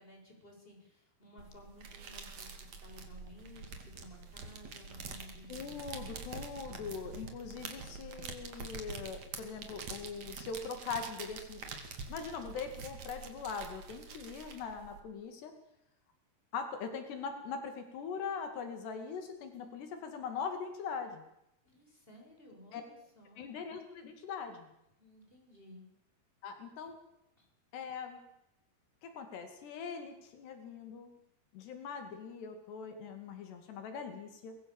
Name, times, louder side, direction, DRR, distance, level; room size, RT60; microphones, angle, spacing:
voice 1, 0.0-5.6 6.1-6.2 21.6-23.6 25.0-25.9 27.4-27.5, left 1 dB, 10° left, 1 dB, 7.1 m, -56 dB
sound 1, 1.4-15.0, right 4 dB, 45° right, 3.4 m, -46 dB
voice 2, 5.5-11.6 12.1-15.5 16.5-21.2 22.7-22.8 23.4-24.7 26.4-27.0 27.7-28.2 29.0-31.1 31.5-34.6, left 5 dB, 85° left, 6 dB, 4.6 m, -41 dB
24.0 x 22.0 x 7.3 m, 0.84 s
omnidirectional pair, 4.7 m